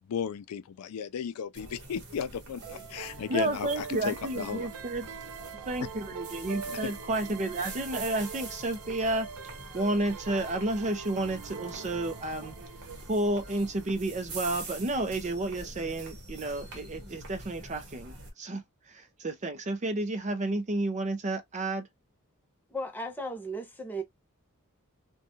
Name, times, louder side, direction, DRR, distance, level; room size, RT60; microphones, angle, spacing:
voice 1, 0.0-4.7 6.7-6.9, left 7 dB, 90° left, 0.4 m, -35 dB
sound 1, 1.5-18.3, right 2 dB, 55° right, 0.9 m, -45 dB
sound 2, 2.6-13.8, right 5 dB, 85° right, 0.4 m, -44 dB
voice 2, 3.3-5.1 5.7-9.3 9.7-12.6 13.1-21.9, right 2 dB, 35° right, 0.5 m, -31 dB
voice 3, 22.7-24.0, right 1 dB, 10° left, 0.7 m, -35 dB
2.7 x 2.2 x 2.7 m
head